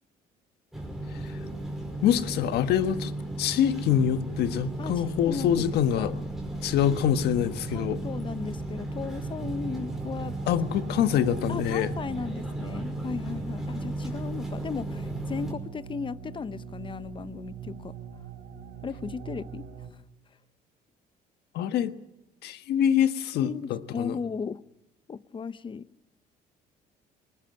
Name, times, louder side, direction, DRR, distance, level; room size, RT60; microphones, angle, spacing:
sound 1, 0.7-15.5, right 1 dB, ahead, 5.2 m, -35 dB
voice 1, 2.0-3.1 3.4-6.2 6.6-8.0 10.5-11.9 21.5-21.9 22.4-24.1, left 9 dB, 75° left, 1.4 m, -25 dB
sound 2, 4.7-19.9, right 8 dB, 85° right, 3.5 m, -43 dB
voice 2, 4.8-6.2 6.9-7.0 7.7-10.4 11.5-17.9 18.8-19.7 23.3-24.6 25.1-25.9, left 5 dB, 30° left, 0.8 m, -36 dB
20.5 x 20.0 x 9.3 m
cardioid pair, 110°, 17 cm